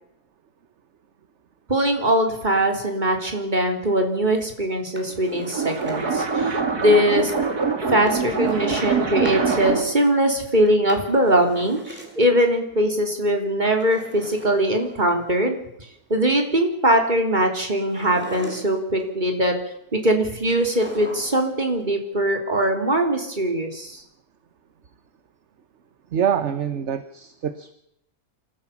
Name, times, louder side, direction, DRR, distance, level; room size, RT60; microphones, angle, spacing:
voice 1, 1.7-7.3 7.9-15.6 16.1-19.5 19.9-24.0, right 1 dB, 30° right, 3 dB, 3.6 m, -21 dB
Drawer open or close, 4.8-6.3 8.0-9.5 10.6-12.4 13.7-15.3 17.8-19.0 20.5-21.6 21.8-21.9, equal, 5° right, 4.4 m, -40 dB
sound 1, 5.1-10.0, right 5 dB, 90° right, 3.1 m, -24 dB
voice 2, 26.1-27.7, right 8 dB, 55° right, 12 dB, 1.2 m, -25 dB
27.0 x 15.0 x 7.3 m, 0.79 s
omnidirectional pair, 1.6 m